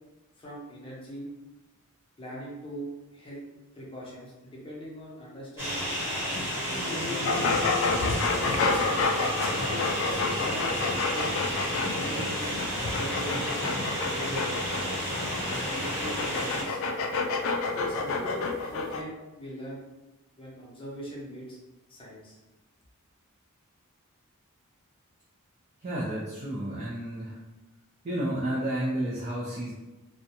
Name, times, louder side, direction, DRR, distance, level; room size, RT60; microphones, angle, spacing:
voice 1, 0.4-1.3 2.2-3.4 3.7-5.9 6.6-7.6 8.4-9.8 10.3-10.7 11.0-11.3 11.8-12.5 12.8-13.6 14.1-14.6 15.5-16.8 17.7-19.8 20.4-21.6 21.9-22.4, right 1 dB, 25° left, -5 dB, 0.7 m, -41 dB
sound 1, 5.6-16.6, equal, 10° right, 1.1 m, -31 dB
sound 2, 7.2-19.0, left 3 dB, 65° left, 0.3 m, -29 dB
voice 2, 25.8-27.4 28.0-29.7, right 1 dB, 35° right, -7 dB, 0.5 m, -31 dB
2.5 x 2.1 x 2.8 m, 1.1 s
head